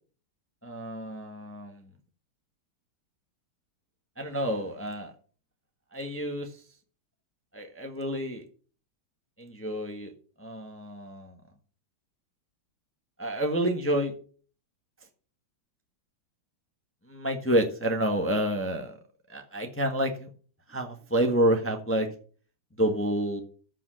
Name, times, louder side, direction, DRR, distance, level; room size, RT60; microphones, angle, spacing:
voice 1, 0.6-1.9 4.2-5.1 5.9-6.5 7.5-8.4 9.4-10.1 10.4-11.3 13.2-14.1 17.1-18.9 19.3-20.3 20.7-22.1 22.8-23.4, right 1 dB, 10° left, 4 dB, 1.1 m, -28 dB
14.0 x 5.7 x 6.3 m, 0.42 s
omnidirectional pair, 2.2 m